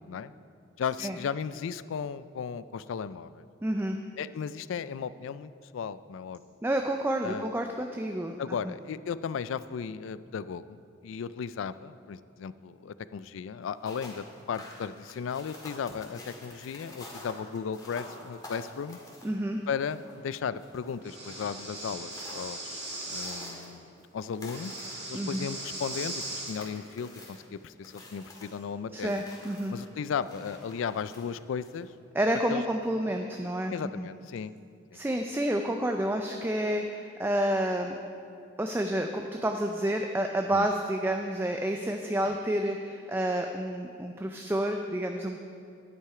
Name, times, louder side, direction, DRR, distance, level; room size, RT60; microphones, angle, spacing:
voice 1, 0.8-3.4 4.2-6.4 7.2-7.5 8.4-10.8 11.0-19.0 19.7-22.8 23.1-23.9 24.1-24.7 25.1-29.2 29.7-31.9 32.5-32.6 33.7-34.5 34.9-35.0 40.5-40.7 42.3-42.4, left 6 dB, 80° left, 15 dB, 0.3 m, -35 dB
voice 2, 3.6-4.0 6.6-8.4 8.7-8.8 19.2-19.6 25.1-25.5 28.9-29.7 32.1-34.1 34.9-38.0 38.6-45.4, right 1 dB, 10° right, 4 dB, 0.4 m, -29 dB
sound 1, 13.6-31.9, left 1 dB, 20° left, 1.9 m, -49 dB
Breathing, 21.0-23.5 24.5-26.6, right 1 dB, 40° right, 2.7 m, -38 dB
10.0 x 9.7 x 4.8 m, 2.4 s
head